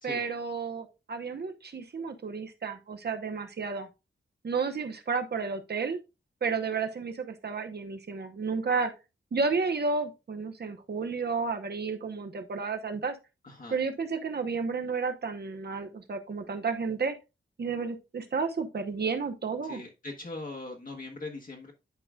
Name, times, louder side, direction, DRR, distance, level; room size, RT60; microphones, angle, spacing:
voice 1, 0.0-3.9 4.4-6.0 6.4-8.9 9.3-13.2 13.7-17.2 17.6-19.8, right 4 dB, 50° right, 7 dB, 1.0 m, -32 dB
voice 2, 13.4-13.8 19.6-21.7, left 2 dB, 40° left, 0 dB, 1.2 m, -40 dB
10.5 x 4.9 x 2.4 m, 0.28 s
wide cardioid pair, 130°, 21 cm